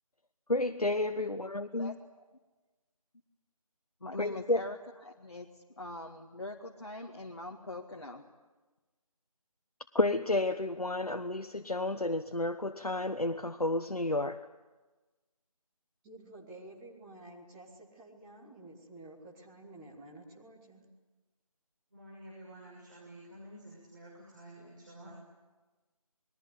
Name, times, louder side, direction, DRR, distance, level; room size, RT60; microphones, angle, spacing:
voice 1, 0.5-2.0 4.2-4.6 9.9-14.5, left 2 dB, 80° left, 7 dB, 1.2 m, -31 dB
voice 2, 4.0-4.8 5.0-8.2, left 2 dB, 50° left, 0 dB, 1.9 m, -42 dB
voice 3, 16.0-20.9, right 2 dB, 5° right, -4 dB, 0.9 m, -51 dB
voice 4, 21.9-25.2, right 1 dB, 35° right, -3 dB, 5.9 m, -50 dB
28.5 x 21.0 x 8.1 m, 1.2 s
figure-of-eight pair, 165°, 19 cm